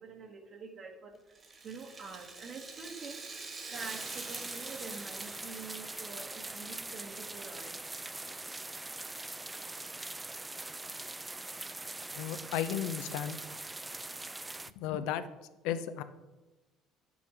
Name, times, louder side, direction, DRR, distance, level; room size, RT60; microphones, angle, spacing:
voice 1, 0.0-1.4 1.6-7.7, right 4 dB, 50° right, -2 dB, 1.4 m, -46 dB
Rattle (instrument), 1.3-6.6 6.9-7.0 7.8-7.9, right 4 dB, 30° right, 1.6 m, -46 dB
sound 1, 3.7-14.7, right 2 dB, 15° right, 0.4 m, -42 dB
voice 2, 12.1-13.4 14.8-15.2 15.6-16.0, left 10 dB, 80° left, 12 dB, 0.7 m, -34 dB
9.6 x 7.0 x 4.9 m, 1.1 s
supercardioid pair, 95°, 0 cm